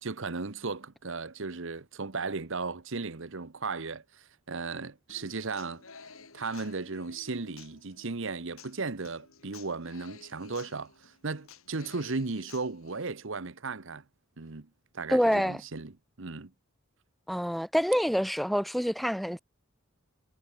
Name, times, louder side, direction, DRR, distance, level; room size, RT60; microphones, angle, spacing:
voice 1, 0.0-5.8 6.3-14.0 14.4-14.7 14.9-15.9 16.2-16.5, right 4 dB, 65° right, 1.1 m, -36 dB
Human voice / Acoustic guitar, 5.1-13.1, left 5 dB, 80° left, 5.3 m, -53 dB
voice 2, 15.1-15.6 17.3-19.4, equal, ahead, 1.1 m, -26 dB
head